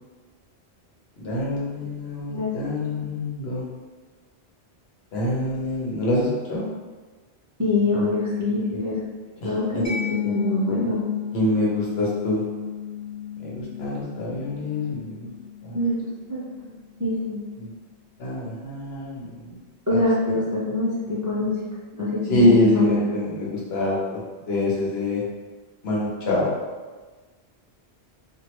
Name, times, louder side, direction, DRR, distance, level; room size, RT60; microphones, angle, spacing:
voice 1, 1.2-3.6 5.1-6.7 9.4-9.5 11.3-12.4 13.4-15.3 15.6-15.8 17.6-17.7 18.2-19.3 19.9-20.0 22.3-24.2 24.5-25.2 25.8-26.5, left 1 dB, 75° left, -5 dB, 1.1 m, -25 dB
voice 2, 7.6-9.0 9.4-11.0 15.7-16.0 16.3-16.4 17.0-17.4 19.9-21.6 21.9-23.1, left 2 dB, 20° right, -8 dB, 0.5 m, -24 dB
Mallet percussion, 9.8-17.2, left 9 dB, 30° left, 1.4 m, -34 dB
3.0 x 2.5 x 3.0 m, 1.3 s
omnidirectional pair, 1.1 m